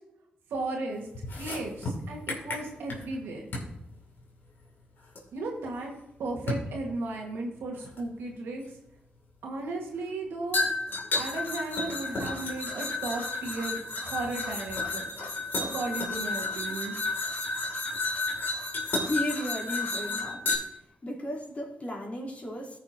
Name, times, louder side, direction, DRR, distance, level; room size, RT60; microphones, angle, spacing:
voice 1, 0.5-1.1 1.3-3.4 5.3-5.9 6.2-8.6 9.4-10.7 11.1-15.0 15.6-16.9, right 2 dB, 85° right, 0 dB, 1.7 m, -35 dB
sound 1, 1.1-3.2 3.5-3.8 5.2-5.3 6.5-6.7 8.0-8.1 10.5-20.5, left 3 dB, 70° left, 2.6 m, -32 dB
voice 2, 19.0-20.5 21.0-22.8, left 1 dB, 40° left, -3 dB, 3.6 m, -34 dB
14.0 x 6.2 x 2.9 m, 0.83 s
supercardioid pair, 45°, 4 cm